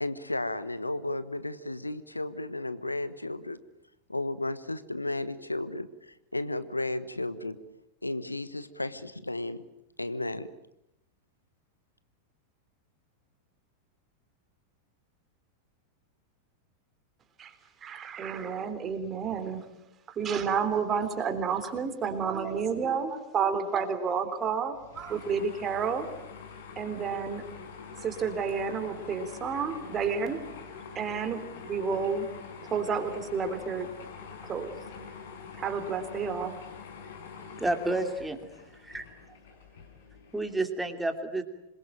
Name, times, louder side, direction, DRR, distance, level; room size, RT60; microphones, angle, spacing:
voice 1, 0.0-3.6 4.1-7.6 8.0-9.6 10.0-10.5, left 2 dB, 85° left, 14 dB, 1.2 m, -33 dB
voice 2, 17.8-19.6 20.1-26.1 26.8-27.4 28.0-30.4 31.0-32.3 32.7-33.9 34.5-34.7 35.6-36.6, right 6 dB, 25° right, 8 dB, 3.6 m, -30 dB
sound 1, 24.7-40.6, left 5 dB, 60° left, 6.2 m, -45 dB
voice 3, 37.6-38.4 38.8-39.0 40.3-41.4, right 2 dB, 5° right, 7 dB, 2.9 m, -30 dB
26.5 x 22.0 x 9.0 m, 0.86 s
figure-of-eight pair, 90°, 0 cm